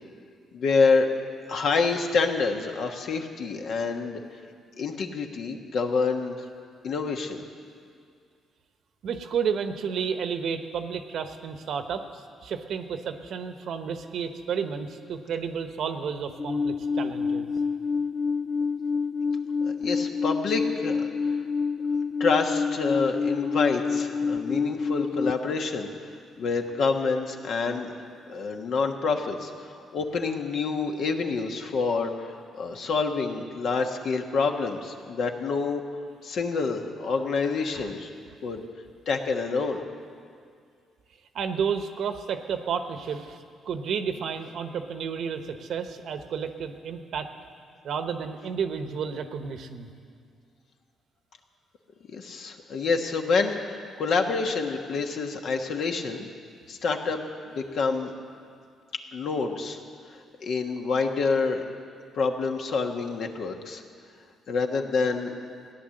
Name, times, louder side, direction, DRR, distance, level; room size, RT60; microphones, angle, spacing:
voice 1, 0.5-1.1 1.5-4.2 4.8-6.4 6.8-7.4 19.6-21.0 22.2-25.9 26.4-35.8 36.2-38.1 38.4-38.6 39.1-39.8 52.1-56.3 56.7-58.1 59.1-59.8 60.1-61.7 62.1-63.8 64.5-65.3, left 4 dB, 65° left, 4 dB, 1.3 m, -27 dB
voice 2, 9.0-12.1 12.4-17.5 37.7-37.9 41.3-43.4 43.7-47.3 47.8-49.9, right 6 dB, 70° right, 8 dB, 1.0 m, -31 dB
Alarm, 16.4-25.3, left 5 dB, 35° left, 0.3 m, -27 dB
16.0 x 10.0 x 7.7 m, 2.2 s
cardioid pair, 90°, 0 cm